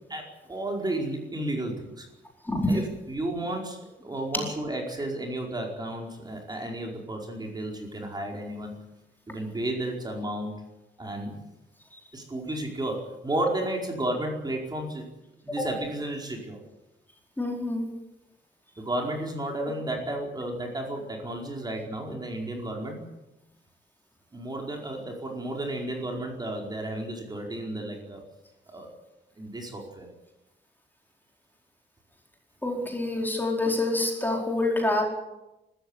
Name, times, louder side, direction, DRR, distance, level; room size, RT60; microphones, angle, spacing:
voice 1, 0.1-2.1 2.7-8.7 9.3-10.7 11.0-11.4 12.1-15.0 15.4-16.6 18.8-23.0 24.3-28.2 28.7-28.9 29.4-30.1, right 1 dB, 20° right, 1 dB, 4.8 m, -32 dB
voice 2, 17.4-17.9 32.6-35.0, left 2 dB, 10° left, 0 dB, 4.6 m, -26 dB
25.0 x 14.0 x 9.9 m, 0.96 s
wide cardioid pair, 150°, 19 cm